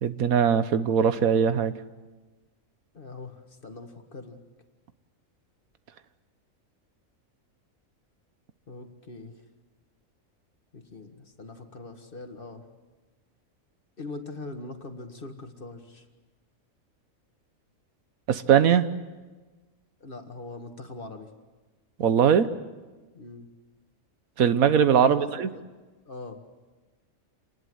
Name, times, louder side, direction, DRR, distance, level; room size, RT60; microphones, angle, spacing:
voice 1, 0.0-1.7 18.3-18.9 22.0-22.5 24.4-25.5, right 8 dB, 90° right, 12 dB, 1.5 m, -21 dB
voice 2, 2.9-4.4 8.7-9.4 10.7-12.7 14.0-16.1 20.0-21.3 23.1-23.5 25.0-25.6 26.1-26.4, left 3 dB, 40° left, 6 dB, 2.0 m, -41 dB
27.0 x 20.0 x 7.9 m, 1.3 s
omnidirectional pair, 1.4 m